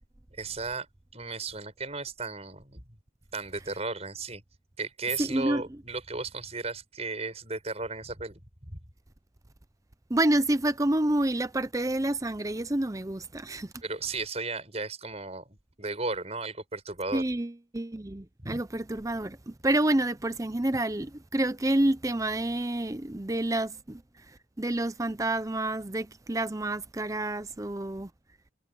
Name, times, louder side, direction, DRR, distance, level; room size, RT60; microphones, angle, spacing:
voice 1, 0.3-0.9 1.1-2.8 3.3-4.4 4.8-8.8 13.8-17.2 18.4-18.6, right 3 dB, 30° right, 7.7 m, -35 dB
voice 2, 5.2-5.6 10.1-13.7 17.1-24.0 24.6-28.1, right 1 dB, 15° right, 0.6 m, -28 dB
head